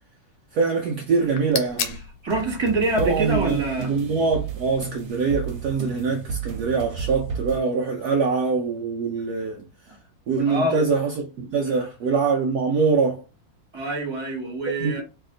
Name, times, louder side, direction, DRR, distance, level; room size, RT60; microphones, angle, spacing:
voice 1, 0.5-2.0 3.0-9.7 10.3-13.2 14.8-15.0, right 4 dB, 75° right, 0.9 m, -24 dB
sound 1, 1.1-6.3, left 6 dB, 80° left, 1.5 m, -38 dB
voice 2, 2.2-3.9 9.9-10.0 10.5-10.9 11.7-11.8 13.7-15.0, right 2 dB, 15° right, 1.0 m, -25 dB
sound 2, 2.3-7.6, right 6 dB, 60° right, 1.2 m, -33 dB
3.4 x 2.8 x 3.7 m
omnidirectional pair, 2.3 m